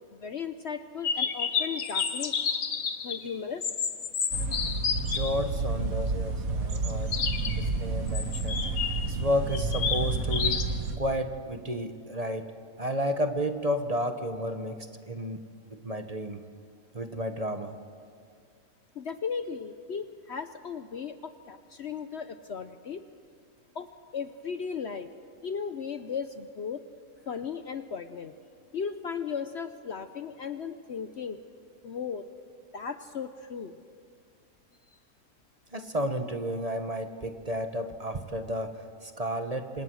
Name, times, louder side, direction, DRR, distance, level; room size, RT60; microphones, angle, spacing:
voice 1, 0.0-2.4 3.0-3.7 18.9-23.0 23.7-25.1 25.4-26.8 27.3-28.3 28.7-31.4 31.8-32.2 32.7-33.8, left 6 dB, 55° left, 10 dB, 0.9 m, -36 dB
sound 1, 1.0-3.2 3.6-5.3 7.1-7.6 8.1-9.1 9.5-10.6, left 6 dB, 90° left, 1.9 m, -30 dB
sound 2, 4.3-11.0, right 3 dB, 65° right, 1.8 m, -30 dB
voice 2, 5.1-7.2 7.6-8.6 9.1-10.6 11.0-12.4 12.8-15.4 15.7-16.4 16.9-17.7 35.7-39.8, equal, 25° right, 7 dB, 1.2 m, -32 dB
27.5 x 26.0 x 6.4 m, 2.2 s
omnidirectional pair, 1.6 m